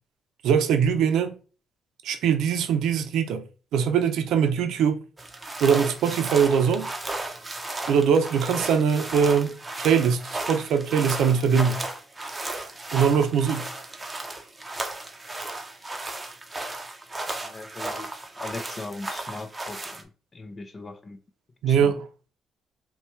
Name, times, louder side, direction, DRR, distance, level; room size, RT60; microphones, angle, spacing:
voice 1, 0.4-1.3 2.0-3.4 3.7-5.0 5.6-6.9 7.9-11.8 12.9-13.7 21.6-22.0, right 7 dB, 85° right, 0.6 m, -22 dB
Walking Raincoat Cloth Layer, 5.2-20.0, right 2 dB, 20° right, 0.7 m, -35 dB
voice 2, 17.4-18.1 18.4-21.2 21.7-21.9, left 3 dB, 30° left, 0.6 m, -39 dB
5.5 x 2.3 x 3.1 m
cardioid pair, 90°, 0 cm